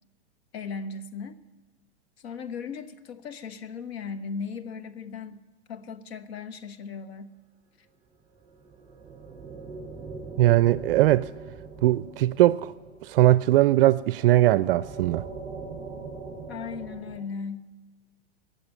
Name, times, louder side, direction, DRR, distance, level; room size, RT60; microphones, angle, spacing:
voice 1, 0.5-1.4 2.2-5.4 5.7-7.3 16.5-17.7, left 5 dB, 65° left, 1.3 m, -37 dB
sound 1, 8.3-17.2, right 4 dB, 15° right, 2.9 m, -42 dB
voice 2, 10.4-11.3 11.8-12.7 13.0-15.2, right 15 dB, 55° right, 0.4 m, -20 dB
18.5 x 7.0 x 9.8 m
hypercardioid pair, 130°, 33 cm